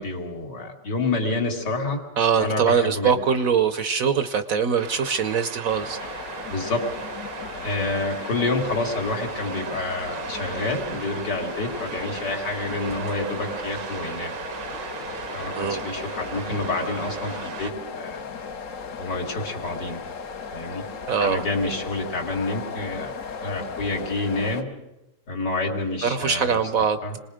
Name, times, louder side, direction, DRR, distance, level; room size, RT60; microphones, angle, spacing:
voice 1, 0.0-2.0 2.4-3.2 6.5-6.8 7.6-14.3 15.3-18.2 19.0-20.0 20.5-20.8 21.2-23.1 23.4-24.7 25.3-26.6 27.0-27.2, left 2 dB, 70° left, 1 dB, 3.3 m, -28 dB
voice 2, 2.2-6.0 15.6-15.8 21.1-21.4 26.0-27.0, right 6 dB, 60° right, 10 dB, 1.2 m, -22 dB
sound 1, 4.8-17.7, right 8 dB, 75° right, 1.6 m, -37 dB
sound 2, 5.7-24.6, left 5 dB, 50° left, 1.2 m, -36 dB
26.5 x 20.0 x 5.1 m, 0.94 s
omnidirectional pair, 1.9 m